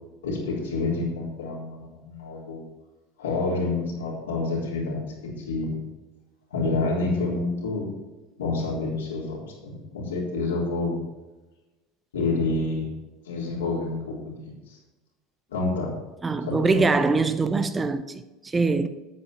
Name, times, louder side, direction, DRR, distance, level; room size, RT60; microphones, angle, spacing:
voice 1, 0.2-2.6 3.2-5.9 6.5-7.9 8.4-11.0 12.1-12.9 13.2-14.8 15.5-16.0 16.4-16.8, left 3 dB, 80° left, 3.7 m, -28 dB
voice 2, 16.2-18.9, right 3 dB, 20° right, 0.7 m, -23 dB
9.6 x 8.4 x 4.4 m
hypercardioid pair, 75°, 0 cm